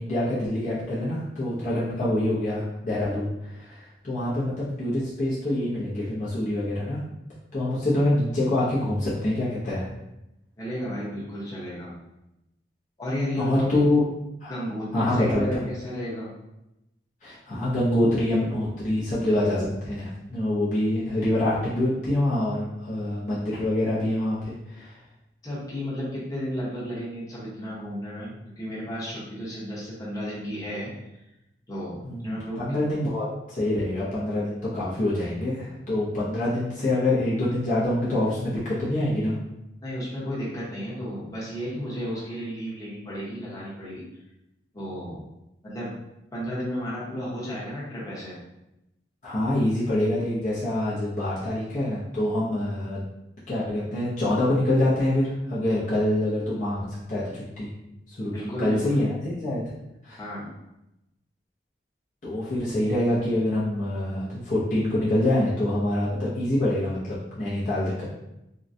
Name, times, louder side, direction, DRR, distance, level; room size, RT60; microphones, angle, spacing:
voice 1, 0.0-7.0 7.5-9.9 13.4-14.0 14.4-14.5 14.9-15.6 17.2-24.9 32.0-39.4 49.2-53.0 53.5-57.7 58.1-59.6 60.0-60.2 62.2-68.0, left 1 dB, 40° left, -9 dB, 0.7 m, -25 dB
voice 2, 10.6-11.9 13.0-13.8 14.5-16.3 25.4-30.9 31.7-32.8 39.8-44.0 44.7-45.2 45.6-45.9 46.3-48.4 58.3-59.0 60.2-60.5, equal, 20° left, -8 dB, 0.9 m, -33 dB
3.8 x 2.2 x 2.6 m, 0.90 s
head